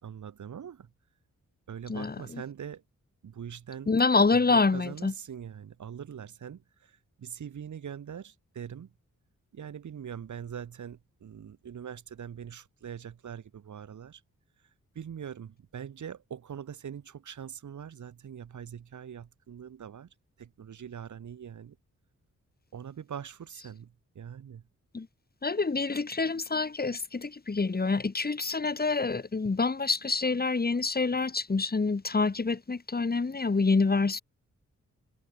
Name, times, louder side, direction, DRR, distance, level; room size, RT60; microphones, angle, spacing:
voice 1, 0.0-0.9 1.7-2.8 3.2-3.9 4.3-8.9 9.5-14.2 15.0-20.1 20.4-21.8 22.7-24.6, right 8 dB, 75° right, 4.0 m, -42 dB
voice 2, 1.9-2.4 3.9-5.1 24.9-25.1 25.4-34.2, left 4 dB, 30° left, 3.7 m, -27 dB
wide cardioid pair, 105°, 30 cm